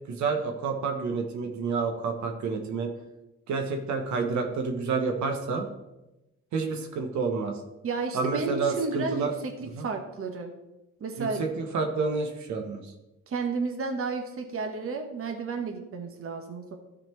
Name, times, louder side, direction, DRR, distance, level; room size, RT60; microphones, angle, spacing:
voice 1, 0.1-2.9 3.5-5.7 6.5-7.5 8.1-9.3 9.7-9.9 11.2-12.8, right 4 dB, 75° right, 4 dB, 1.2 m, -29 dB
voice 2, 7.8-10.5 11.0-11.4 13.3-16.7, right 4 dB, 50° right, 4 dB, 1.2 m, -32 dB
12.5 x 4.3 x 4.5 m, 0.96 s
cardioid pair, 95°, 29 cm